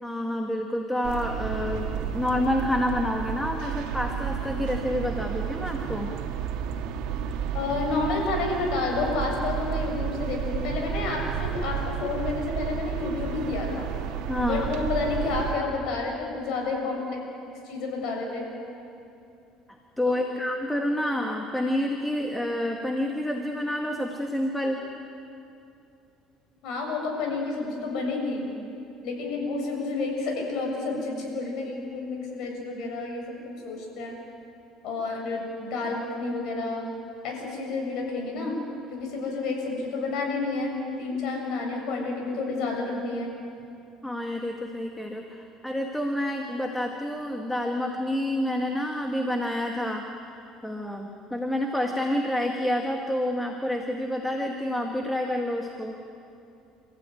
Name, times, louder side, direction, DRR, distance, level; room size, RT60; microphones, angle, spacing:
voice 1, 0.0-6.1 14.3-14.7 20.0-24.8 44.0-50.1 50.6-56.0, left 1 dB, 5° left, 2 dB, 1.9 m, -28 dB
sound 1, 1.0-15.6, right 8 dB, 80° right, 1.9 m, -31 dB
voice 2, 7.5-13.9 14.4-17.2 17.6-18.4 20.1-20.4 26.6-28.4 29.0-33.4 33.6-34.1 34.8-36.9 37.2-38.6 38.9-43.3, left 3 dB, 70° left, 1 dB, 7.2 m, -30 dB
29.0 x 15.0 x 9.4 m, 2.7 s
cardioid pair, 110°, 0 cm